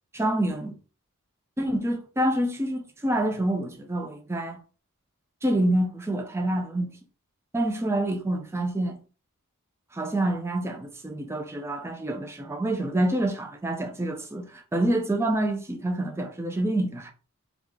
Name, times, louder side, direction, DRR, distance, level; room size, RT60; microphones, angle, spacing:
voice 1, 0.1-0.8 1.6-4.6 5.4-6.9 7.5-9.0 9.9-17.1, right 1 dB, 10° right, 0.4 m, -27 dB
3.1 x 2.4 x 3.7 m
head